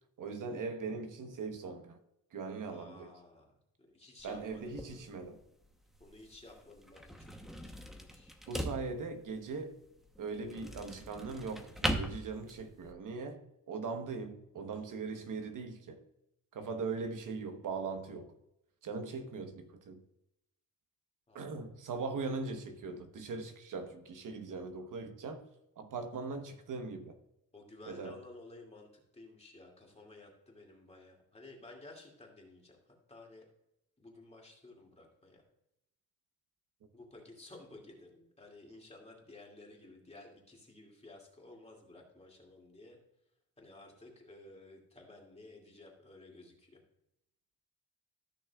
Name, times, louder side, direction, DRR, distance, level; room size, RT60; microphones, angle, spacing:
voice 1, 0.2-2.0 2.3-3.1 4.2-5.4 8.5-9.8 10.2-16.0 16.5-18.3 18.8-20.0 21.3-25.4 25.8-27.2 27.9-28.2, right 4 dB, 60° right, 1.1 m, -40 dB
voice 2, 2.7-3.5 3.8-5.0 6.0-8.3 21.3-21.6 27.5-33.4 34.0-35.4 36.9-43.0 43.6-46.8, left 2 dB, 15° left, 2.4 m, -54 dB
sound 1, 4.2-12.9, equal, ahead, 0.9 m, -41 dB
14.5 x 6.3 x 2.3 m
cardioid pair, 135°, 36 cm